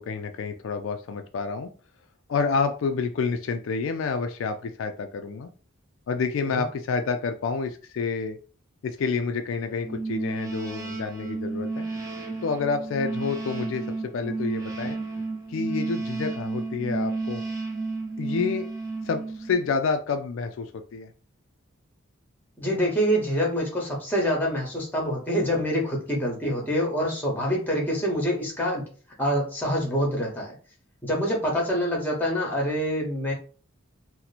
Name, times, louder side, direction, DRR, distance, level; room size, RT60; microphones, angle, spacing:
voice 1, 0.0-1.7 2.3-5.5 6.1-8.4 8.8-11.9 12.4-15.0 15.5-17.4 18.2-18.7 19.0-21.1, left 5 dB, 60° left, 6 dB, 0.3 m, -28 dB
sound 1, 9.8-19.8, right 3 dB, 15° right, 0.7 m, -32 dB
voice 2, 22.6-28.8 29.2-30.5 31.0-33.3, equal, 10° left, -1 dB, 1.0 m, -26 dB
2.9 x 2.1 x 4.0 m, 0.39 s
head